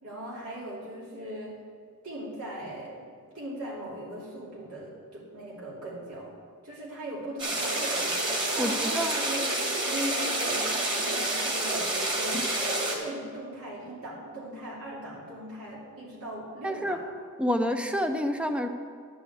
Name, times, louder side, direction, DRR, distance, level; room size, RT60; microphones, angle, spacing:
voice 1, 0.0-1.6 2.0-3.1 3.3-6.3 6.6-8.2 8.5-17.0, right 1 dB, 75° right, -7 dB, 2.6 m, -39 dB
sound 1, 7.4-13.0, right 2 dB, 20° right, 1.8 m, -28 dB
voice 2, 8.6-9.1 16.6-17.0 17.4-18.7, equal, 5° right, 7 dB, 0.6 m, -28 dB
11.0 x 5.5 x 7.9 m, 2.2 s
head